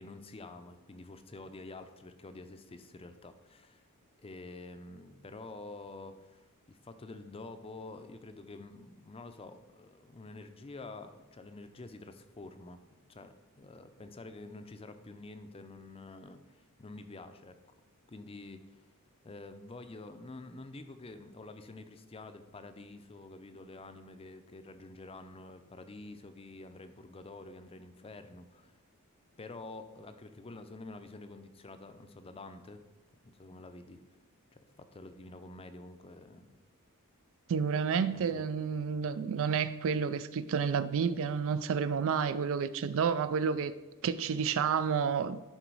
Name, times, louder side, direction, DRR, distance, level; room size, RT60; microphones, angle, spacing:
voice 1, 0.0-3.8 4.2-12.8 13.1-17.6 18.1-18.9 19.2-28.7 29.4-32.8 33.3-34.0 34.5-36.5 38.1-38.5, left 2 dB, 25° left, 0.5 m, -48 dB
voice 2, 37.5-43.7 44.0-45.4, right 6 dB, 65° right, 0.4 m, -30 dB
11.0 x 3.9 x 4.7 m
head